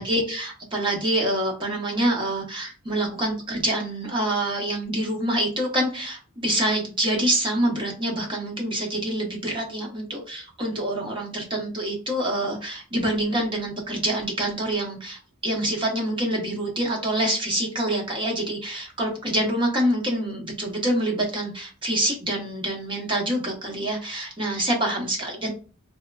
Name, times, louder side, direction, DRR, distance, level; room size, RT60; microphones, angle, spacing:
voice 1, 0.0-25.5, right 1 dB, 25° right, 0 dB, 0.7 m, -26 dB
3.4 x 2.2 x 2.3 m, 0.37 s
head